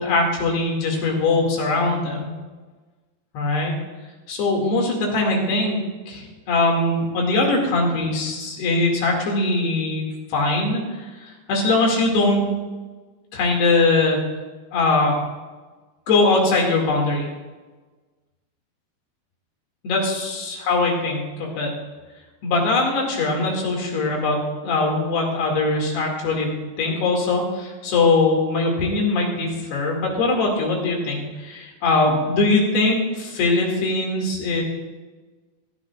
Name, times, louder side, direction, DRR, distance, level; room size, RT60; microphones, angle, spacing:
voice 1, 0.0-2.3 3.3-3.7 4.3-5.8 6.1-11.1 11.5-12.4 13.3-14.2 14.7-15.2 16.1-17.3 19.8-21.7 22.4-34.6, left 2 dB, 80° left, 0 dB, 4.4 m, -21 dB
17.0 x 13.0 x 2.4 m, 1.3 s
omnidirectional pair, 4.6 m